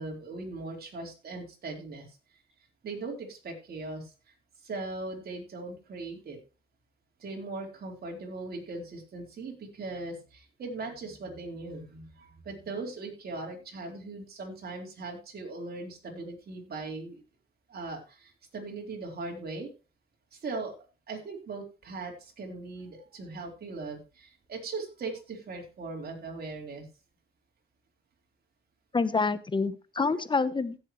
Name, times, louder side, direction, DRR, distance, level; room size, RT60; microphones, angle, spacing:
voice 1, 0.0-2.1 2.8-4.1 4.6-6.4 7.2-17.2 17.7-19.7 20.3-20.8 21.1-26.9 30.0-30.2, right 3 dB, 50° right, 0 dB, 4.1 m, -39 dB
voice 2, 28.9-30.8, left 4 dB, 25° left, 15 dB, 0.9 m, -27 dB
17.0 x 7.4 x 3.2 m, 0.31 s
cardioid pair, 90°, 20 cm